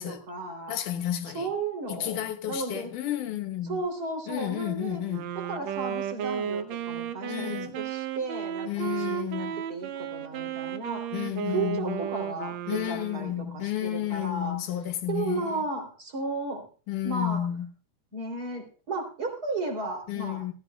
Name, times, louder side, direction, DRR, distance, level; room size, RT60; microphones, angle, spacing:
voice 1, 0.0-0.7 1.3-2.9 3.6-5.0 5.3-11.1 11.5-14.6 15.1-16.7 17.0-17.4 18.1-20.4, right 3 dB, 30° right, 3.4 m, -34 dB
voice 2, 0.7-1.5 1.9-3.8 4.3-5.3 7.3-7.8 8.7-9.6 11.1-12.0 12.7-15.6 16.9-17.7 20.1-20.5, left 12 dB, 80° left, 2.7 m, -31 dB
Wind instrument woodwind instrument, 5.1-13.4, right 9 dB, 70° right, 1.8 m, -34 dB
18.5 x 14.0 x 2.3 m
omnidirectional pair, 3.6 m